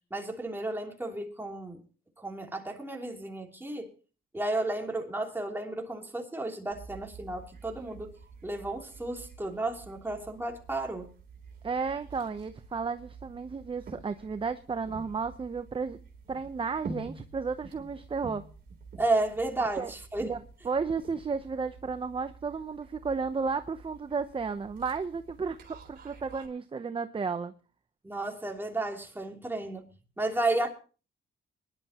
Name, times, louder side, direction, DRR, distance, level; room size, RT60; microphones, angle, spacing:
voice 1, 0.1-1.8 2.2-3.9 4.3-8.1 8.4-11.1 19.0-20.3 28.0-29.8 30.2-30.7, right 2 dB, 10° right, 3.1 m, -32 dB
sound 1, 6.7-26.5, right 4 dB, 50° right, 3.7 m, -49 dB
voice 2, 11.6-16.0 16.3-18.5 19.6-19.9 20.2-20.4 20.6-27.5, right 5 dB, 25° right, 0.8 m, -33 dB
22.5 x 11.5 x 3.0 m
cardioid pair, 90°, 20 cm